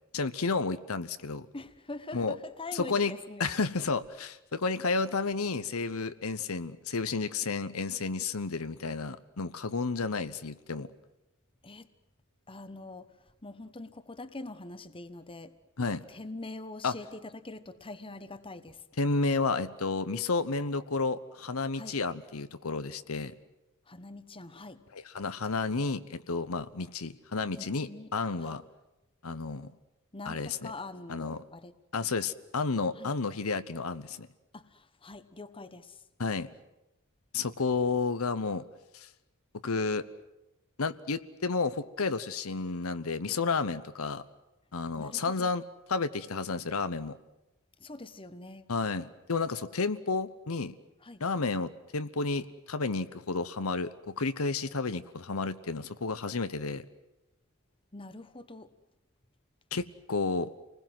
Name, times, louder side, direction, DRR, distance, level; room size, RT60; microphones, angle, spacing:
voice 1, 0.1-1.5 2.1-2.4 2.7-3.1 3.4-10.9 15.8-16.0 16.8-16.9 19.0-23.3 24.9-28.6 29.2-29.7 30.2-30.7 31.1-31.4 31.9-34.3 36.2-36.5 37.3-38.6 38.9-39.1 39.6-40.0 40.8-44.2 44.7-45.6 45.9-47.2 48.7-50.7 51.2-56.8 59.7-60.5, left 4 dB, 90° left, 1.0 m, -31 dB
voice 2, 1.5-3.5 11.6-11.9 12.5-13.1 13.4-15.5 15.9-18.8 21.7-22.0 23.9-24.8 27.6-28.1 28.4-28.6 30.1-31.7 33.0-33.1 34.5-36.0 45.0-45.5 47.8-48.7 51.0-51.2 57.9-58.7, left 2 dB, 25° left, 1.2 m, -44 dB
29.0 x 20.0 x 7.8 m
head